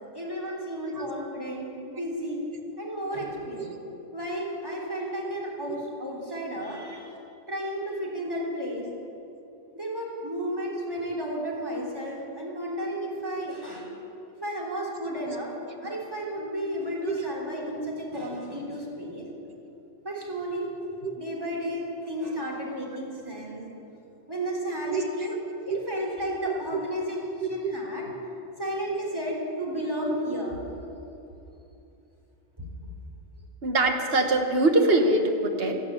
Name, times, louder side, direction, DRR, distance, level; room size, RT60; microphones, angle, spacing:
voice 1, 0.1-2.4 2.8-3.7 4.1-7.1 7.5-8.9 9.7-13.9 14.3-15.5 15.8-19.3 20.0-20.7 21.2-23.6 24.3-25.4 25.7-28.1 28.6-30.6, equal, 20° right, -4 dB, 3.3 m, -33 dB
voice 2, 20.8-21.1 24.8-25.0 25.7-25.8 26.5-26.8 27.4-27.7 28.0-28.1 33.6-35.8, right 2 dB, 55° right, 4 dB, 1.6 m, -25 dB
13.5 x 12.0 x 8.9 m, 2.8 s
omnidirectional pair, 1.2 m